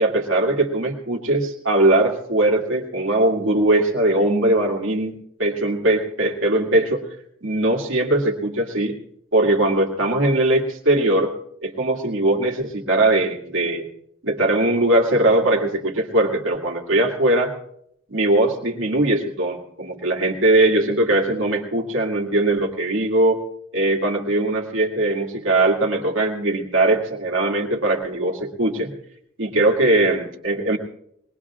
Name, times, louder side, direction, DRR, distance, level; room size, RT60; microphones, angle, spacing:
voice 1, 0.0-7.0 7.4-9.0 9.3-11.3 11.6-13.9 14.2-17.5 18.1-23.4 23.7-28.9 29.4-30.8, right 2 dB, 80° right, 0 dB, 2.3 m, -20 dB
22.0 x 20.0 x 2.4 m, 0.75 s
head